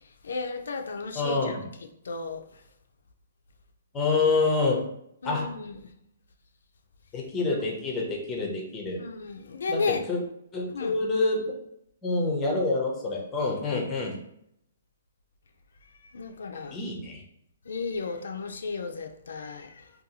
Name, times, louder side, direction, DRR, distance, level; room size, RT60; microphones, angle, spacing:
voice 1, 0.2-1.7 2.0-2.6 5.2-5.9 9.0-10.1 10.7-11.0 13.6-13.9 16.1-16.8 17.7-19.9, left 4 dB, 85° left, 5 dB, 0.3 m, -34 dB
voice 2, 1.2-1.7 3.9-4.8 5.2-5.5 7.1-9.0 9.7-10.2 10.5-11.5 12.0-14.2 16.7-17.2, left 3 dB, 15° left, -1 dB, 0.4 m, -27 dB
2.6 x 2.2 x 2.7 m, 0.75 s
hypercardioid pair, 170°, 0 cm